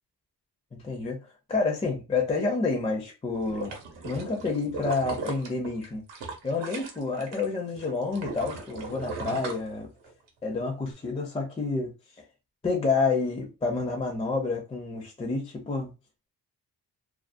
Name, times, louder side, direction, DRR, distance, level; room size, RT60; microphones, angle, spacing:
voice 1, 0.7-3.7 4.0-6.0 6.4-9.9 10.4-11.9 12.6-15.9, left 4 dB, 15° left, 0.4 m, -29 dB
sound 1, 3.3-7.5 7.8-10.3 10.7-10.8, right 3 dB, 80° right, 0.8 m, -38 dB
2.4 x 2.1 x 2.5 m
wide cardioid pair, 145°, 42 cm